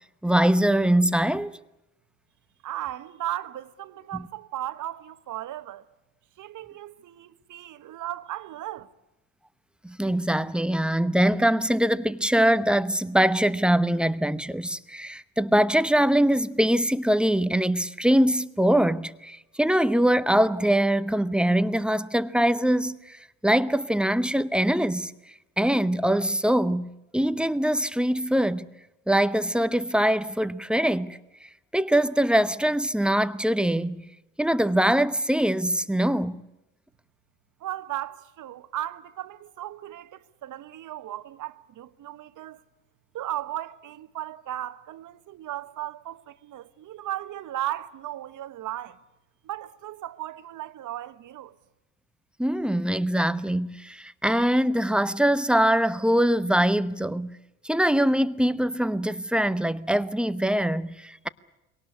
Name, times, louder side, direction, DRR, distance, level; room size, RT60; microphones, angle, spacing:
voice 1, 0.2-1.5 9.8-25.1 25.6-28.7 29.1-31.2 31.7-34.0 34.4-36.4 52.4-57.4 57.6-61.3, right 1 dB, 5° right, 0.9 m, -23 dB
voice 2, 2.6-5.8 6.4-8.9 37.6-42.6 43.1-49.0 49.4-51.5, right 13 dB, 55° right, 1.3 m, -36 dB
22.5 x 18.5 x 9.8 m
hypercardioid pair, 70°, 37 cm